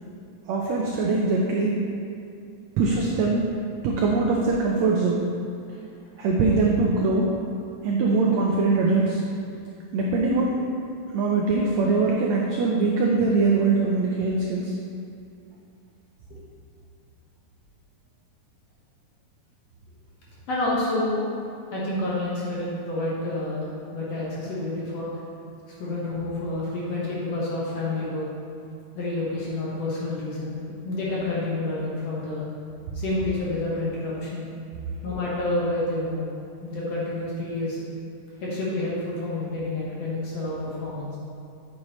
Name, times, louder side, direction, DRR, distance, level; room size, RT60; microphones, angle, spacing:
voice 1, 0.5-1.7 2.8-3.4 3.8-5.2 6.2-7.3 7.8-9.2 9.9-10.6 11.1-14.7, right 3 dB, 85° right, -1 dB, 1.5 m, -22 dB
voice 2, 20.5-21.3 21.7-25.1 25.8-28.3 29.0-30.6 30.9-32.5 32.9-34.5 35.0-36.3 36.6-37.8 38.4-41.2, left 2 dB, 60° left, -7 dB, 2.1 m, -29 dB
8.6 x 7.9 x 3.1 m, 2.5 s
omnidirectional pair, 4.0 m